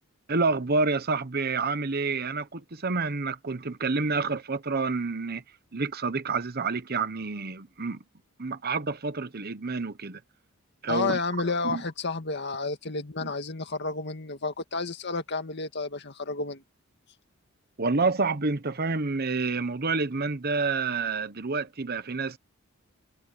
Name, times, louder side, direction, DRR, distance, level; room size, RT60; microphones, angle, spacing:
voice 1, 0.3-5.4 5.7-8.0 8.4-10.2 10.8-11.2 11.6-11.8 13.2-13.3 17.8-22.4, right 4 dB, 50° right, 1.1 m, -28 dB
voice 2, 10.9-16.6, left 3 dB, 55° left, 2.0 m, -31 dB
head